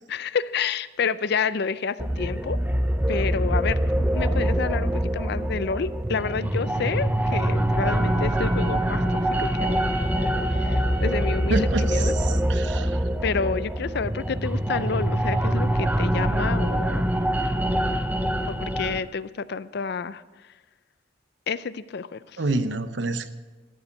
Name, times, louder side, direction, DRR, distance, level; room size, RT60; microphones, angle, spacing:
voice 1, 0.1-2.6 3.1-9.0 9.4-9.8 10.5-12.2 13.2-17.0 18.5-20.2 21.5-22.4, left 5 dB, 60° left, 16 dB, 0.5 m, -29 dB
sound 1, 2.0-19.0, right 1 dB, 10° right, 0.7 m, -24 dB
Wind instrument woodwind instrument, 7.7-11.6, right 4 dB, 50° right, 1.2 m, -38 dB
voice 2, 11.5-13.0 22.4-23.3, right 2 dB, 75° right, 11 dB, 0.8 m, -28 dB
13.5 x 7.1 x 8.5 m, 1.3 s
head